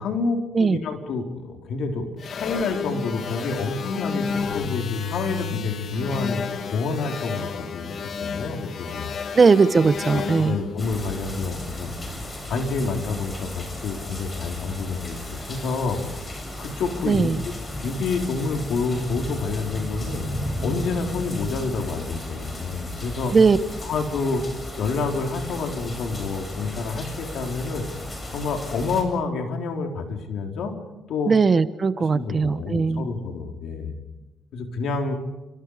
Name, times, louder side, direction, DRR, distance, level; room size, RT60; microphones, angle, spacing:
voice 1, 0.0-9.1 10.1-11.9 12.5-16.0 16.6-17.3 17.8-20.3 20.6-23.3 23.8-24.4 24.8-27.9 28.3-30.8 31.1-31.3 32.0-33.9 34.5-35.2, left 4 dB, 75° left, 3 dB, 4.3 m, -28 dB
sound 1, 2.2-11.7, left 6 dB, 55° left, 2.2 m, -31 dB
voice 2, 9.3-10.5 17.1-17.4 23.3-23.6 31.3-33.1, right 4 dB, 35° right, 13 dB, 1.1 m, -19 dB
sound 2, 10.8-29.0, left 1 dB, 25° left, 7.6 m, -34 dB
29.0 x 26.5 x 5.1 m, 1.0 s
cardioid pair, 90°, 0 cm